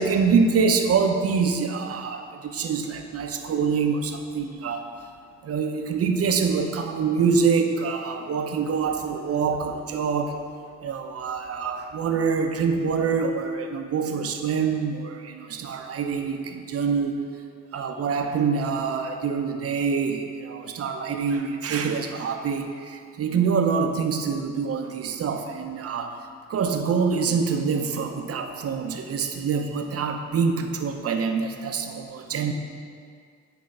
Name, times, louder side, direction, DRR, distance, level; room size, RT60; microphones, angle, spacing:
voice 1, 0.0-4.9 5.4-10.4 10.8-17.3 17.7-26.2 26.5-32.5, right 5 dB, 50° right, 5 dB, 0.7 m, -25 dB
8.6 x 3.5 x 5.4 m, 2.2 s
cardioid pair, 90°, 30 cm